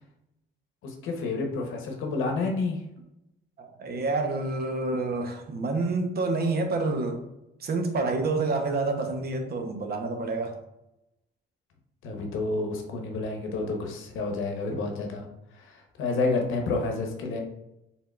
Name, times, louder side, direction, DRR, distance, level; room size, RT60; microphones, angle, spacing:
voice 1, 0.8-2.8 12.0-15.2 15.5-17.4, left 3 dB, 90° left, 0.8 m, -29 dB
voice 2, 3.6-7.2 7.6-10.6, right 3 dB, 50° right, 0.7 m, -28 dB
4.5 x 3.5 x 2.3 m
cardioid pair, 90°, 20 cm